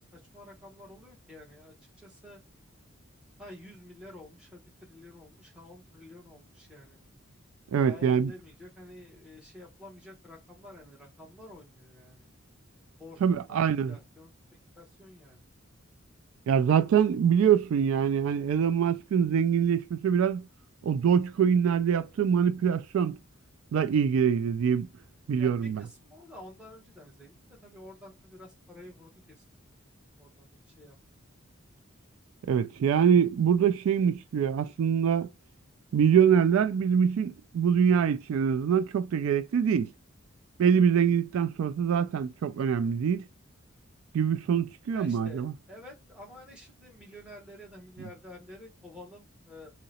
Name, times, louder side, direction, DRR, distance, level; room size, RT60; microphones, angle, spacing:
voice 1, 0.1-2.4 3.4-7.0 7.8-12.3 13.0-14.3 14.8-15.4 25.4-29.4 29.8-30.5 30.8-30.9 44.9-49.7, left 1 dB, 5° right, 1.0 m, -50 dB
voice 2, 7.7-8.3 13.2-14.0 16.5-20.5 20.8-23.2 23.7-24.9 25.3-25.8 32.4-35.3 35.9-39.9 40.6-43.3 44.1-45.5 48.0-48.1, right 7 dB, 80° right, 0.3 m, -24 dB
3.7 x 2.0 x 4.1 m
head